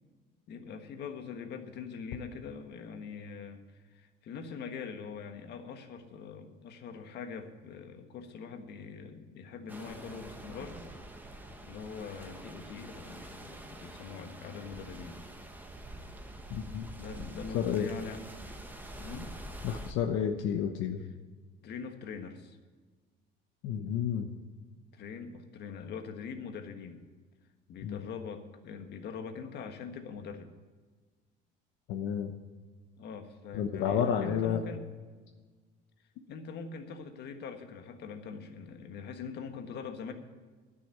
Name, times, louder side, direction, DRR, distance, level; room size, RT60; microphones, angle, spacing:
voice 1, 0.5-10.8 11.6-15.2 16.9-18.2 19.0-19.3 21.6-22.6 24.9-27.0 27.7-30.5 33.0-34.8 36.3-40.1, left 5 dB, 55° left, 6 dB, 1.5 m, -43 dB
sound 1, 9.7-19.9, right 1 dB, 10° right, 1.0 m, -46 dB
voice 2, 16.5-16.9 17.5-17.9 19.6-21.0 23.6-24.3 27.8-28.0 31.9-32.3 33.5-34.6, left 8 dB, 80° left, 4 dB, 1.0 m, -30 dB
12.0 x 7.0 x 9.1 m, 1.4 s
cardioid pair, 145°, 20 cm